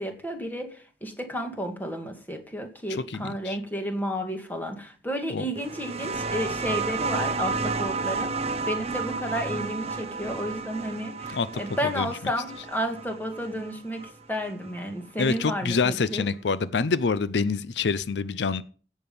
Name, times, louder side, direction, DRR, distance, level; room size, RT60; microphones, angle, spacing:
voice 1, 0.0-8.3 8.6-16.2, equal, 10° left, 2.0 m, -32 dB
voice 2, 3.1-3.6 5.3-5.5 11.3-11.5 12.0-12.1 15.2-18.6, left 4 dB, 80° left, 0.6 m, -26 dB
sound 1, 5.6-14.8 16.0-16.1, right 4 dB, 35° right, 0.9 m, -32 dB
16.5 x 7.3 x 5.4 m
head